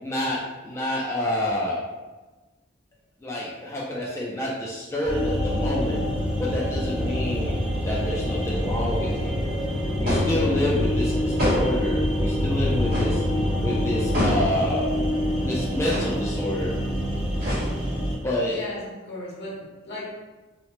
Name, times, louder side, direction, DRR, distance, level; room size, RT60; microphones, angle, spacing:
voice 1, 0.0-1.9 3.2-6.0 6.4-7.5 7.8-9.3 10.0-13.2 13.6-14.9 15.4-16.7 18.2-18.6, left 1 dB, 15° left, -6 dB, 0.3 m, -28 dB
sound 1, 5.0-18.2, equal, 5° right, 0.7 m, -26 dB
sound 2, 10.1-10.4 11.4-11.9 12.9-13.2 14.1-14.6 15.8-16.2 17.4-18.0, equal, 50° right, 1.0 m, -26 dB
voice 2, 10.3-10.6 18.5-20.1, left 1 dB, 60° left, -5 dB, 0.9 m, -36 dB
2.9 x 2.0 x 2.9 m, 1.2 s
head